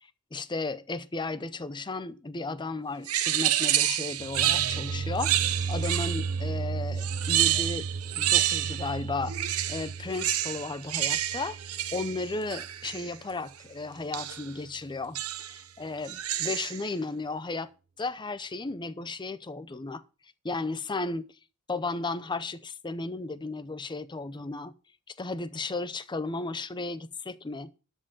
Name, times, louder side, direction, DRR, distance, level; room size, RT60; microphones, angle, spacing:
voice 1, 0.3-7.9 8.2-9.3 9.7-11.6 11.9-17.7 18.0-20.0 20.4-21.2 21.7-24.7 25.1-27.7, left 3 dB, 20° left, 0.6 m, -34 dB
sound 1, 3.1-6.4 7.0-9.0 9.3-13.1 14.1-14.5 15.1-15.6 16.0-16.8, right 12 dB, 80° right, 0.8 m, -29 dB
sound 2, 4.2-13.0, right 4 dB, 40° right, 0.4 m, -35 dB
12.5 x 4.6 x 7.4 m
head